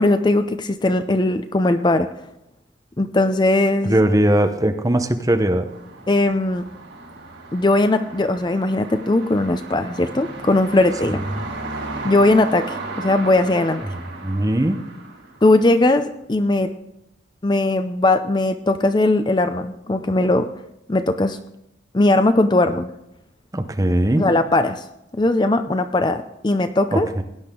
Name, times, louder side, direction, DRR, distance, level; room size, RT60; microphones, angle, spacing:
voice 1, 0.0-2.1 3.0-4.0 6.1-6.6 7.5-11.2 12.0-13.8 15.4-16.7 17.4-20.5 20.9-21.4 21.9-22.9 24.2-24.8 25.1-27.1, left 2 dB, 25° left, 9 dB, 0.5 m, -19 dB
voice 2, 3.8-5.7 11.4-11.5 14.2-14.9 23.5-24.3 26.9-27.2, right 1 dB, 20° right, 6 dB, 0.8 m, -19 dB
sound 1, 5.7-15.9, right 2 dB, 80° right, 5.4 m, -35 dB
17.5 x 10.5 x 3.8 m, 0.84 s
head